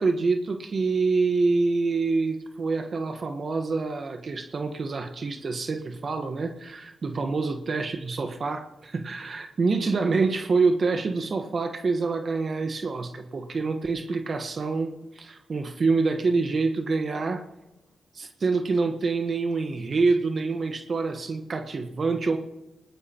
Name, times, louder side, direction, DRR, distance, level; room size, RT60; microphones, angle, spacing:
voice 1, 0.0-17.4 18.1-22.4, right 4 dB, 60° right, 6 dB, 1.2 m, -26 dB
19.5 x 18.5 x 2.9 m, 1.0 s
supercardioid pair, 40°, 0 cm